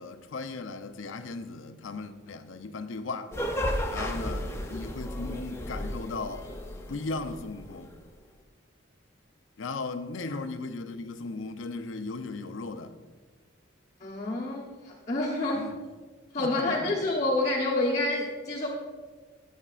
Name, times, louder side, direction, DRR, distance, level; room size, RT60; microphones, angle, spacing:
voice 1, 0.0-3.4 3.9-6.6 6.9-7.9 9.6-12.9 15.5-15.8 16.4-17.0, left 3 dB, 75° left, 0.6 m, -37 dB
sound 1, 3.3-8.0, equal, 15° left, 0.5 m, -34 dB
voice 2, 14.0-15.7 16.3-18.7, left 2 dB, 35° left, 1.0 m, -28 dB
13.5 x 7.2 x 2.4 m
head